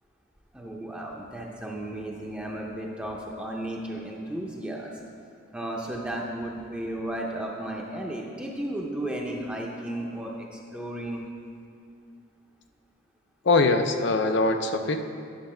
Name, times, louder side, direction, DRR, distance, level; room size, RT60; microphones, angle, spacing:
voice 1, 0.5-4.9 5.5-11.2, right 1 dB, 5° right, -2 dB, 0.7 m, -34 dB
voice 2, 13.4-15.0, left 3 dB, 55° left, 7 dB, 0.5 m, -22 dB
10.5 x 6.8 x 4.3 m, 2.4 s
head